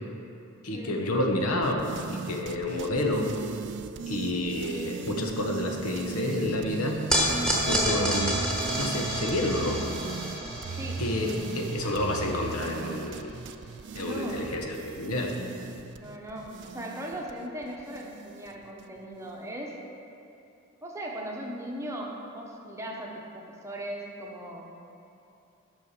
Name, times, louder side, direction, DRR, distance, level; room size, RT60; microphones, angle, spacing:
voice 1, 0.6-3.3 4.1-7.0 7.2-8.4 8.8-9.8 11.0-13.4 13.9-15.4, left 1 dB, 85° left, 2 dB, 1.0 m, -29 dB
sound 1, 1.6-18.8, right 5 dB, 55° right, 0.3 m, -38 dB
sound 2, 7.1-13.5, equal, 5° left, 1.4 m, -30 dB
voice 2, 14.0-14.4 15.9-19.8 20.8-24.7, right 1 dB, 15° right, -1 dB, 0.9 m, -38 dB
8.3 x 5.6 x 6.6 m, 2.7 s
head